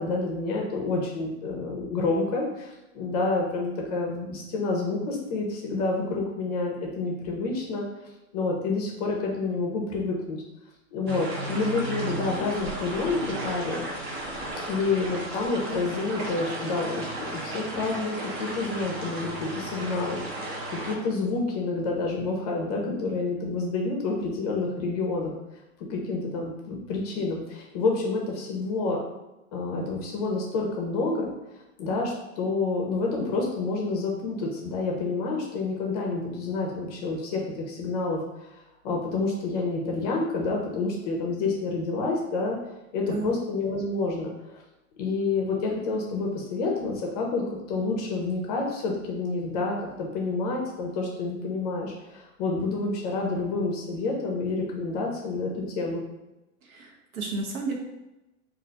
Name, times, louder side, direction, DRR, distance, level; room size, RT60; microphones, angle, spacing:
voice 1, 0.0-7.8 8.3-10.4 10.9-13.9 14.7-25.3 25.9-29.0 29.5-31.3 31.8-38.2 38.8-42.6 42.9-44.6 45.0-56.0, left 3 dB, 30° left, -1 dB, 0.5 m, -28 dB
sound 1, 11.1-20.9, right 1 dB, 50° right, 0.8 m, -34 dB
voice 2, 56.6-57.7, right 3 dB, 85° right, 1 dB, 0.9 m, -32 dB
2.4 x 2.2 x 3.8 m, 0.98 s
supercardioid pair, 155°, 41 cm